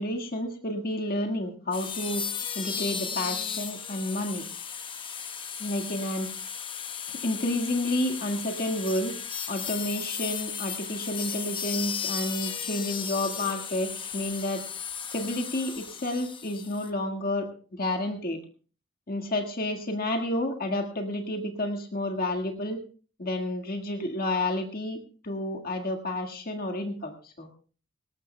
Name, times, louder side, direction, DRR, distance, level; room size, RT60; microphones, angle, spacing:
voice 1, 0.0-2.2 2.6-4.5 5.6-6.3 7.1-9.1 9.5-14.6 15.1-18.4 19.1-22.8 23.2-27.5, left 1 dB, 45° left, 3 dB, 1.7 m, -30 dB
sound 1, 1.7-16.9, left 7 dB, 25° left, 1.0 m, -35 dB
19.5 x 19.0 x 2.2 m, 0.38 s
head